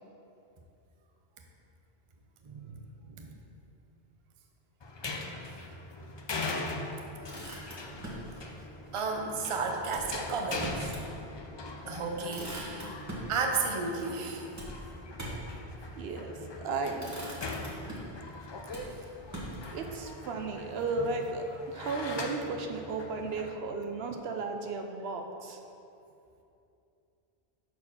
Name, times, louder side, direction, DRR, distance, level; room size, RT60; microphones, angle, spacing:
voice 1, 2.4-2.7 3.1-3.4 8.9-10.9 11.9-13.0 13.3-14.5, right 4 dB, 35° right, 2 dB, 0.6 m, -33 dB
sound 1, 4.8-23.5, left 2 dB, 40° left, 0.4 m, -41 dB
Motor vehicle (road), 7.3-8.3 9.9-11.1 11.5-11.6 11.9-13.3 14.6-15.6 16.4-16.7 17.0-18.2 18.7-19.9, right 1 dB, 15° right, 1.2 m, -42 dB
voice 2, 16.0-17.1 19.7-25.6, right 3 dB, 75° right, 4 dB, 0.8 m, -34 dB
6.4 x 4.4 x 5.6 m, 2.7 s
omnidirectional pair, 1.1 m